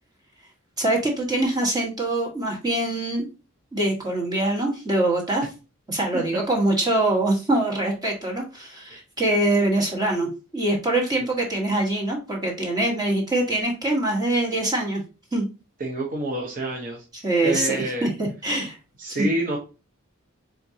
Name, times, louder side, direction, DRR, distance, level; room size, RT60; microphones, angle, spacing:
voice 1, 0.8-3.3 3.7-5.5 5.9-15.0 15.3-15.5 17.2-18.8 19.1-19.3, right 1 dB, 20° right, -1 dB, 1.4 m, -24 dB
voice 2, 15.8-17.0 17.4-18.1 19.0-19.6, right 2 dB, 40° right, -1 dB, 0.9 m, -27 dB
4.4 x 3.6 x 2.7 m, 0.31 s
head